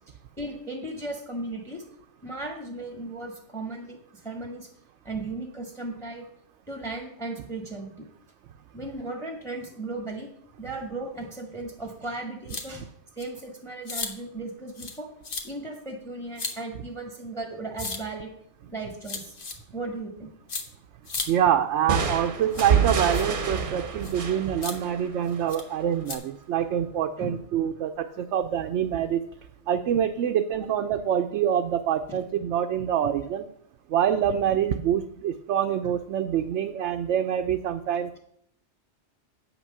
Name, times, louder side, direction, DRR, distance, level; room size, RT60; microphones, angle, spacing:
voice 1, 0.1-1.9 2.2-4.7 5.0-6.3 6.7-8.1 8.7-10.3 10.6-12.9 13.2-15.1 15.4-18.3 18.7-19.4 19.7-20.3 27.2-27.4 30.2-30.3 32.1-32.2, right 2 dB, ahead, 2 dB, 1.4 m, -36 dB
sound 1, 12.5-12.7 13.2-13.3 13.9-14.1 14.8-15.0 15.2-15.4 16.4-16.5 17.8-18.0 19.0-19.5 20.5-20.6 21.1-21.3 22.5-22.7 23.1-23.2 24.0-24.2 24.6-24.7 25.5-25.6 26.1-26.2, left 4 dB, 50° left, 1.3 m, -33 dB
voice 2, 21.3-29.2 29.7-33.5 33.9-38.2, right 9 dB, 75° right, 6 dB, 0.9 m, -26 dB
sound 2, 21.9-25.6, right 6 dB, 50° right, 0.9 m, -27 dB
8.6 x 6.0 x 6.7 m, 0.71 s
omnidirectional pair, 1.2 m